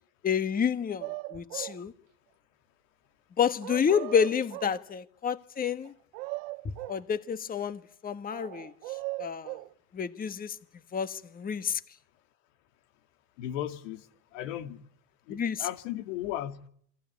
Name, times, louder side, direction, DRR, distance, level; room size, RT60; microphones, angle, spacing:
voice 1, 0.2-1.9 3.4-5.9 6.9-8.7 9.2-9.6 9.9-10.6 10.9-11.8 15.3-15.6, left 7 dB, 25° left, 1.4 m, -29 dB
sound 1, 1.0-1.8 3.6-4.8 5.8-7.0 8.3-9.7, right 22 dB, 80° right, 1.1 m, -39 dB
voice 2, 13.4-14.8 15.3-16.7, left 12 dB, 90° left, 2.3 m, -36 dB
28.0 x 24.0 x 8.2 m
cardioid pair, 130°, 37 cm